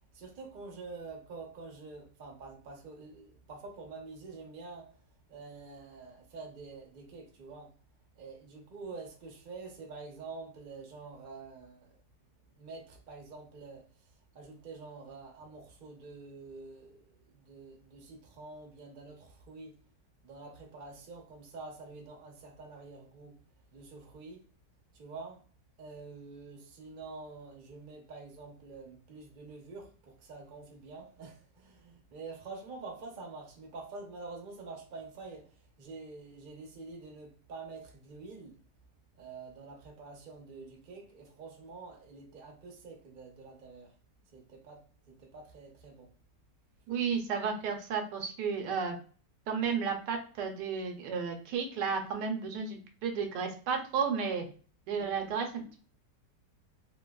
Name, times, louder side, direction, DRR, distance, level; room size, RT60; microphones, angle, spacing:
voice 1, 0.1-4.9 5.3-7.7 8.1-12.0 12.6-13.8 14.3-19.7 20.2-23.4 23.7-24.4 24.9-25.4 25.8-35.5 35.8-38.5 39.1-43.9 44.3-46.1 55.0-55.7, right 3 dB, 45° right, 0.6 m, -47 dB
voice 2, 46.9-49.0 49.5-54.5 54.9-55.5, right 6 dB, 80° right, 1.2 m, -32 dB
3.1 x 2.8 x 2.2 m
omnidirectional pair, 1.9 m